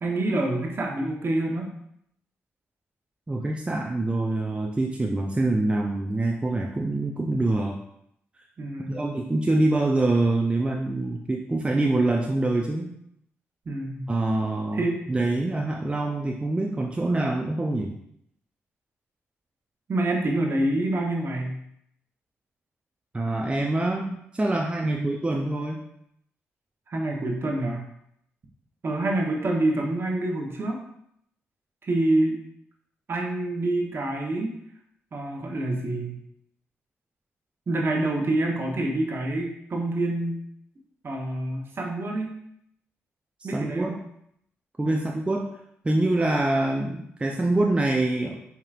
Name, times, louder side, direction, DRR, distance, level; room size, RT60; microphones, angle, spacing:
voice 1, 0.0-1.7 8.6-9.0 13.7-14.1 14.7-15.0 19.9-21.6 24.8-25.1 26.9-27.8 28.8-30.8 31.8-32.4 33.1-34.6 35.1-36.2 37.7-40.4 41.0-42.4 43.4-43.9 44.8-45.2, right 2 dB, 45° right, 0 dB, 1.0 m, -27 dB
voice 2, 3.3-7.8 8.9-12.9 14.1-18.0 23.1-25.8 43.4-44.0 44.8-45.5 45.8-48.4, right 2 dB, 20° right, 0 dB, 0.5 m, -25 dB
4.7 x 2.9 x 2.4 m, 0.73 s
supercardioid pair, 50°, 5 cm